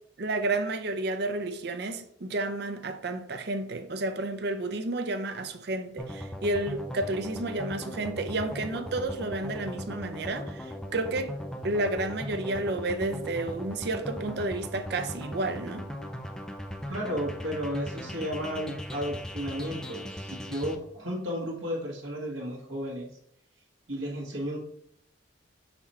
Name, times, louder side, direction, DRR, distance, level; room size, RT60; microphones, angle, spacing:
voice 1, 0.2-11.4 11.6-15.9, right 2 dB, 55° right, 0.5 m, -31 dB
sound 1, 6.0-20.7, equal, 5° left, 0.4 m, -38 dB
voice 2, 16.9-23.1 23.9-24.6, equal, 80° right, 1.3 m, -33 dB
5.6 x 4.2 x 4.2 m
head